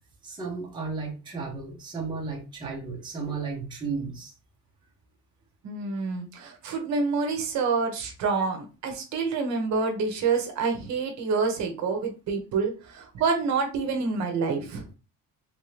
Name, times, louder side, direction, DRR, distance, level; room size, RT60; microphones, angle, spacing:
voice 1, 0.2-4.3, right 4 dB, 15° right, -1 dB, 0.7 m, -34 dB
voice 2, 5.6-14.9, right 4 dB, 55° right, 4 dB, 0.8 m, -27 dB
3.2 x 2.7 x 3.1 m, 0.32 s
cardioid pair, 175°, 33 cm